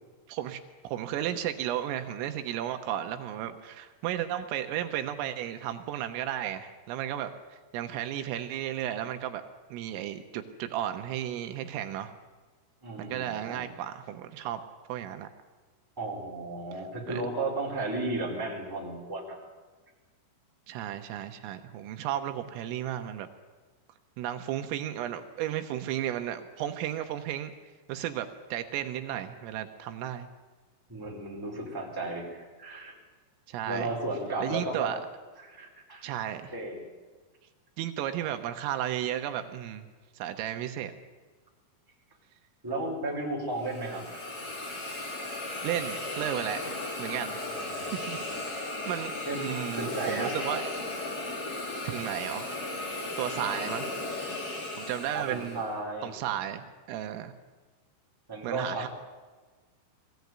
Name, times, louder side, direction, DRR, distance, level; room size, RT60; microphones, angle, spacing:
voice 1, 0.3-9.4 9.7-12.1 13.0-14.6 14.9-15.3 17.1-17.2 20.7-23.3 24.2-27.5 27.9-30.3 33.5-33.9 34.4-35.0 36.0-36.5 37.8-39.9 40.2-41.0 45.6-47.4 47.8-50.6 51.8-52.6 53.2-53.9 54.8-55.6 56.0-57.3 58.4-58.9, right 11 dB, 80° right, 7 dB, 3.6 m, -34 dB
voice 2, 12.8-13.7 16.0-19.4 30.9-33.0 33.6-34.9 35.4-36.1 36.5-36.8 42.6-44.1 47.5-48.4 49.3-49.4 49.7-50.3 51.8-51.9 55.1-56.1 58.3-58.9, right 2 dB, 5° right, -2 dB, 3.9 m, -34 dB
Hiss, 43.6-55.7, left 2 dB, 30° left, 1.8 m, -36 dB
22.0 x 16.0 x 9.4 m, 1.3 s
omnidirectional pair, 6.0 m